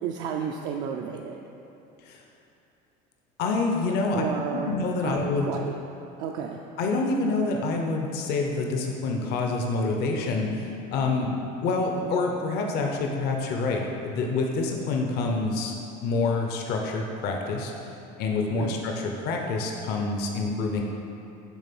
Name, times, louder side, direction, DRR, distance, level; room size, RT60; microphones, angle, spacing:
voice 1, 0.0-1.4 4.1-4.7 5.0-5.8 6.2-6.6 18.5-18.8, right 7 dB, 70° right, 1 dB, 0.5 m, -32 dB
voice 2, 3.4-4.2 4.5-5.5 6.8-11.3 11.6-15.7 16.0-17.7 18.2-20.8, left 3 dB, 55° left, 2 dB, 0.7 m, -27 dB
7.2 x 3.4 x 5.9 m, 2.7 s
cardioid pair, 135°, 20 cm